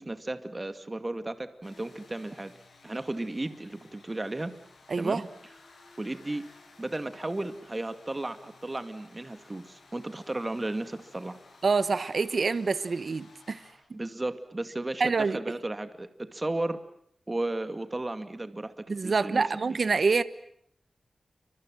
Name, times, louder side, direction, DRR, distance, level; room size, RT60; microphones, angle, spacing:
voice 1, 0.0-2.5 2.8-4.6 5.0-5.3 6.0-6.5 6.8-11.4 13.9-16.8 17.3-19.4, right 2 dB, 25° right, 9 dB, 2.4 m, -34 dB
sound 1, 1.6-13.7, left 3 dB, 80° left, 7.6 m, -56 dB
voice 2, 4.9-5.2 11.6-13.6 15.0-15.4 18.9-20.2, right 4 dB, 60° right, 14 dB, 1.2 m, -26 dB
29.5 x 25.5 x 7.7 m, 0.68 s
cardioid pair, 65°, 0 cm